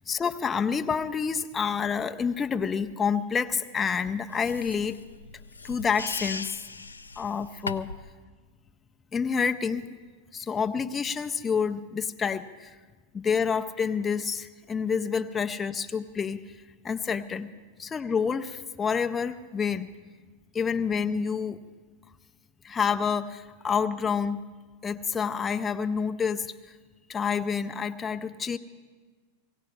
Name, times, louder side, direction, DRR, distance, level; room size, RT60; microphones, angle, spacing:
voice 1, 0.1-5.0 5.6-6.6 7.2-7.9 9.1-9.8 10.3-12.8 13.1-16.6 16.8-17.5 17.8-19.9 20.5-21.6 22.6-24.4 24.8-26.7 27.1-28.6, left 6 dB, 20° left, 7 dB, 0.5 m, -28 dB
sound 1, 4.3-8.1, left 4 dB, 75° left, 0.4 m, -38 dB
18.0 x 17.0 x 4.8 m, 1.4 s
figure-of-eight pair, 90°, 0 cm